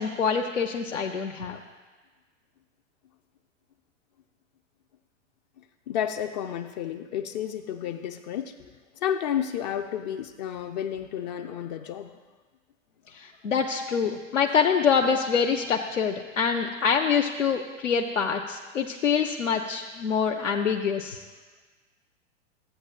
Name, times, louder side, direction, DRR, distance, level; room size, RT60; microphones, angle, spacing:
voice 1, 0.0-1.6 13.1-21.2, left 6 dB, 80° left, 1 dB, 0.7 m, -25 dB
voice 2, 5.9-8.5 9.0-12.1, left 9 dB, 35° left, 7 dB, 0.5 m, -31 dB
14.0 x 8.1 x 2.4 m, 1.3 s
figure-of-eight pair, 95°, 38 cm